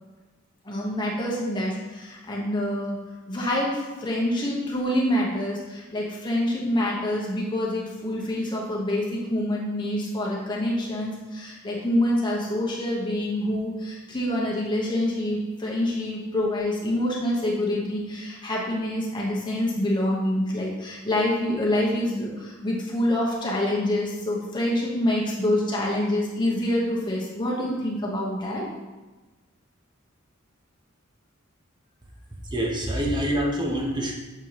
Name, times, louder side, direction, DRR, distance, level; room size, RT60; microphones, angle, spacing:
voice 1, 0.6-3.0 3.3-28.6, left 1 dB, 20° left, -4 dB, 1.1 m, -26 dB
voice 2, 32.4-34.1, equal, 20° right, 0 dB, 0.9 m, -26 dB
6.8 x 4.5 x 3.0 m, 1.2 s
head